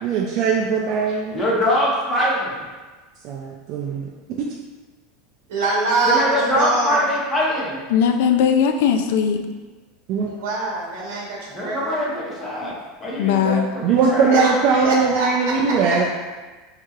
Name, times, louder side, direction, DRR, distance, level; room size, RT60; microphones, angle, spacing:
voice 1, 0.0-1.4 3.2-4.1 4.4-4.5 10.1-10.3 13.8-16.1, right 5 dB, 45° right, -2 dB, 0.4 m, -20 dB
voice 2, 1.3-2.6 6.0-7.9 11.5-14.4, equal, 15° left, -6 dB, 1.0 m, -23 dB
voice 3, 5.5-7.0 10.3-12.0 14.3-14.5 14.8-15.3, right 3 dB, 90° right, -4 dB, 0.9 m, -23 dB
voice 4, 7.9-9.4 13.2-13.6, left 7 dB, 75° left, 6 dB, 0.4 m, -18 dB
4.5 x 2.8 x 2.4 m, 1.3 s
supercardioid pair, 145°, 0 cm